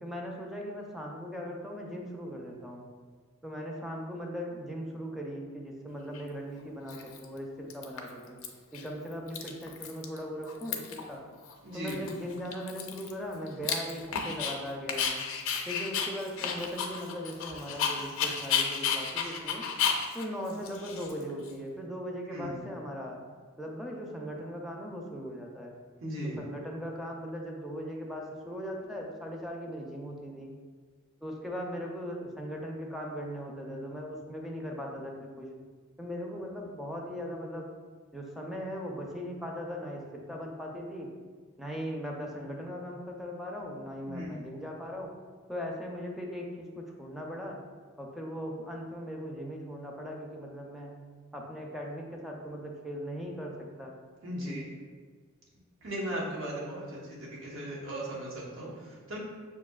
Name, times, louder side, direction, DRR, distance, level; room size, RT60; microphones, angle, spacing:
voice 1, 0.0-2.9 3.4-8.4 8.7-11.2 11.7-15.2 15.7-19.7 20.1-23.2 23.6-25.8 26.4-30.5 31.2-35.5 36.0-37.7 38.1-41.1 41.6-45.1 45.5-47.6 48.0-50.9 51.3-53.9 54.4-54.6, equal, ahead, -1 dB, 0.4 m, -39 dB
Dog, 6.1-6.2 6.9-7.4 7.7-8.5 8.7-8.9 9.1-10.2 10.4-11.1 11.4-11.5 11.9-14.5 14.9-21.5, left 7 dB, 65° left, 0.5 m, -32 dB
voice 2, 11.6-12.0 22.3-22.6 26.0-26.4 44.0-44.5 54.2-54.7 55.8-59.2, equal, 65° right, -5 dB, 1.0 m, -37 dB
6.3 x 2.7 x 2.3 m, 1.5 s
head